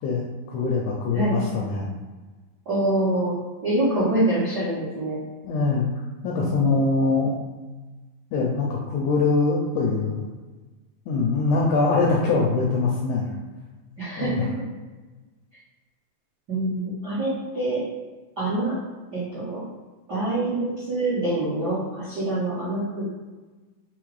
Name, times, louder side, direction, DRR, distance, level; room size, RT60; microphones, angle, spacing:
voice 1, 0.0-1.9 5.4-5.9 6.2-7.4 8.3-10.2 11.1-13.3 14.2-14.5, left 3 dB, 80° left, -2 dB, 1.7 m, -23 dB
voice 2, 2.6-3.4 3.6-5.2 6.4-6.8 14.0-14.5 16.5-17.8 18.4-18.7 19.1-19.6 20.1-23.1, right 2 dB, 80° right, -11 dB, 0.9 m, -25 dB
5.4 x 2.0 x 4.6 m, 1.3 s
omnidirectional pair, 3.9 m